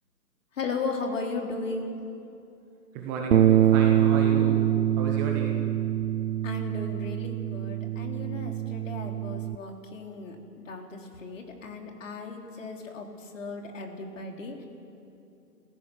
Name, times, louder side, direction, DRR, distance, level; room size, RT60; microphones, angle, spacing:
voice 1, 0.5-1.9 6.4-14.6, left 3 dB, 50° left, 2 dB, 3.4 m, -36 dB
voice 2, 2.9-4.7 4.9-5.6, right 4 dB, 10° right, 0 dB, 0.9 m, -33 dB
Bass guitar, 3.3-9.6, right 11 dB, 60° right, 0.6 m, -24 dB
28.5 x 15.5 x 6.3 m, 2.7 s
figure-of-eight pair, 145°, 48 cm